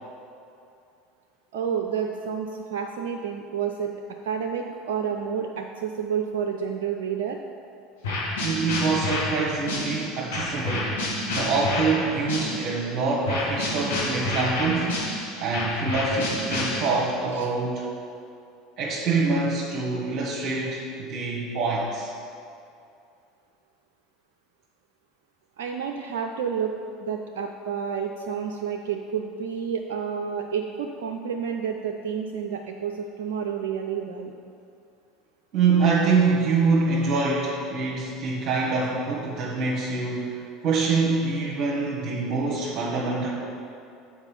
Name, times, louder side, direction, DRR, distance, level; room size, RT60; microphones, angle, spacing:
voice 1, 1.5-7.4 17.3-17.5 25.6-26.7 27.0-34.3, right 7 dB, 65° right, 3 dB, 0.4 m, -30 dB
sound 1, 8.0-12.8 13.3-17.2, left 2 dB, 75° left, 1.5 m, -29 dB
voice 2, 8.4-11.0 11.3-17.8 18.8-22.1 35.5-43.3, right 4 dB, 50° right, -4 dB, 1.0 m, -25 dB
7.2 x 4.8 x 5.3 m, 2.5 s
figure-of-eight pair, 70°, 0 cm